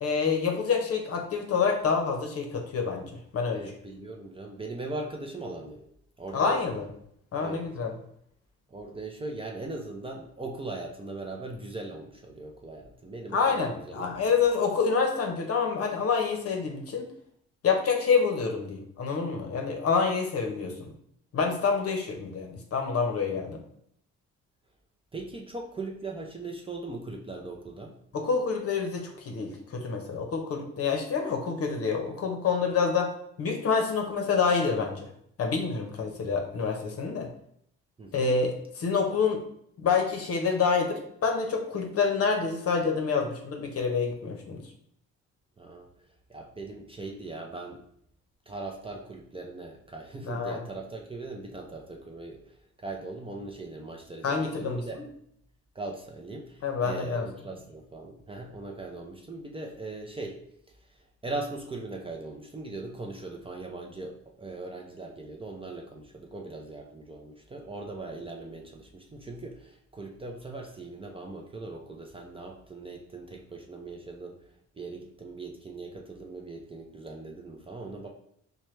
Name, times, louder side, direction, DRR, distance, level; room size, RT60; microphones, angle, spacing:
voice 1, 0.0-3.7 6.3-6.9 7.3-8.0 13.3-17.1 17.6-20.9 21.3-23.6 28.1-33.1 33.4-35.1 35.4-37.3 38.1-39.4 39.8-44.6 50.2-50.6 54.2-55.0 56.6-57.3, left 5 dB, 50° left, 3 dB, 0.8 m, -27 dB
voice 2, 3.5-5.8 6.2-6.6 7.4-7.6 8.7-13.7 14.0-14.1 25.1-27.9 38.0-38.2 45.6-45.9 46.3-47.8 48.5-52.4 52.8-55.0 55.8-56.5 56.8-60.4 61.2-74.4 74.8-78.1, right 2 dB, 20° right, 0 dB, 0.5 m, -39 dB
4.3 x 2.2 x 3.1 m, 0.70 s
cardioid pair, 90°, 30 cm